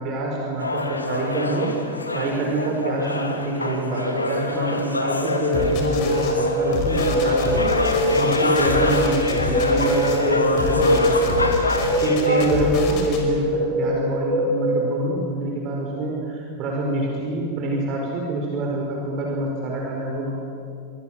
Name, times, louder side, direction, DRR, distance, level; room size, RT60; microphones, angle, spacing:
voice 1, 0.0-1.7 2.1-7.7 8.2-11.4 12.0-20.3, right 2 dB, 35° right, -1 dB, 5.4 m, -26 dB
sound 1, 0.6-12.5, left 2 dB, 80° left, 2.3 m, -25 dB
sound 2, 5.2-14.8, equal, 65° right, 5.0 m, -24 dB
sound 3, 5.5-6.3 6.7-10.2 10.6-13.2, left 4 dB, 40° left, 5.2 m, -28 dB
26.0 x 25.5 x 7.7 m, 2.4 s
figure-of-eight pair, 90°, 0 cm